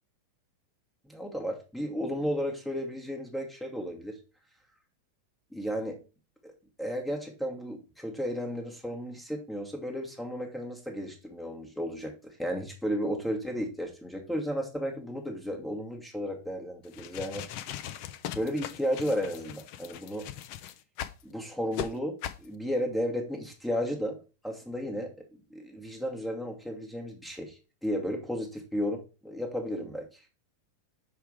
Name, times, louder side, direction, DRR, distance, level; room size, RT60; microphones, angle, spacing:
voice 1, 1.1-4.2 5.5-6.0 6.4-6.5 6.8-17.4 18.3-20.3 21.2-24.2 24.4-30.2, equal, 5° left, 1 dB, 1.2 m, -33 dB
sound 1, 16.8-21.2 21.7-21.9 22.2-22.5, left 10 dB, 45° left, 0.5 m, -39 dB
5.7 x 3.5 x 4.8 m, 0.32 s
figure-of-eight pair, 90°, 0 cm